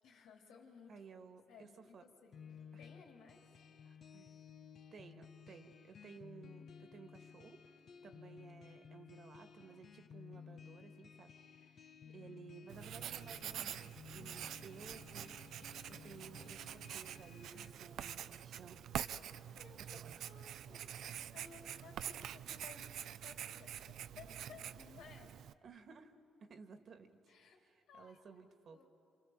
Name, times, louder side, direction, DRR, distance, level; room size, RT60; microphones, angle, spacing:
voice 1, 0.0-1.0 1.5-3.5 12.0-12.4 19.5-25.3 27.3-27.6 27.9-28.4 28.7-28.9, left 5 dB, 90° left, 0 dB, 3.6 m, -59 dB
voice 2, 0.9-2.1 2.7-2.8 3.9-4.3 4.9-7.6 8.0-15.4 15.9-18.9 19.8-20.4 21.9-22.0 25.6-26.2 26.4-28.9, right 5 dB, 55° right, 8 dB, 1.9 m, -57 dB
sound 1, 2.3-17.7, left 7 dB, 55° left, 1.2 m, -56 dB
Writing, 12.7-25.5, right 10 dB, 75° right, 0.6 m, -46 dB
28.5 x 26.5 x 7.6 m, 2.8 s
cardioid pair, 90°, 0 cm